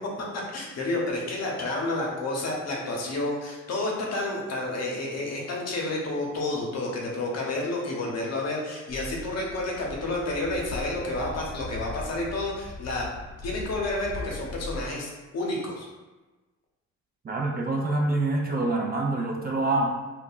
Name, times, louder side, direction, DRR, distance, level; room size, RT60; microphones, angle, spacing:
voice 1, 0.3-13.0 13.4-15.9, left 2 dB, 60° left, -2 dB, 0.8 m, -30 dB
sound 1, 8.9-14.8, left 2 dB, 40° left, 0.4 m, -39 dB
voice 2, 17.2-19.9, right 2 dB, 30° right, -1 dB, 0.5 m, -26 dB
2.4 x 2.1 x 3.8 m, 1.2 s
cardioid pair, 90°, 30 cm